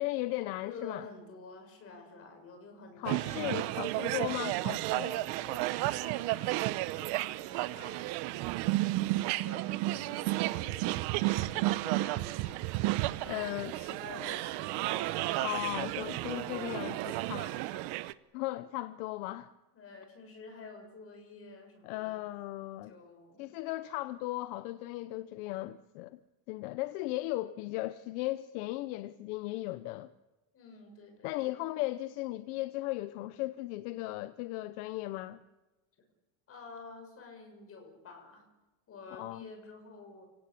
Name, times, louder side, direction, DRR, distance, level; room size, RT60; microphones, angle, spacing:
voice 1, 0.0-1.1 3.0-5.1 13.3-13.7 15.4-16.9 17.3-17.5 18.3-19.5 21.8-22.9 23.4-26.2 26.5-30.1 31.2-35.4 39.1-39.5, left 17 dB, 60° left, 1.0 m, -36 dB
voice 2, 0.6-4.1 5.0-8.2 8.8-12.6 13.1-15.5 16.1-17.9 19.7-22.2 22.8-23.4 30.5-31.7 36.5-38.4 38.9-40.3, left 3 dB, 25° left, 6.8 m, -50 dB
sound 1, 3.0-18.1, right 18 dB, 50° right, 0.9 m, -32 dB
29.0 x 18.0 x 8.6 m
cardioid pair, 160°, 49 cm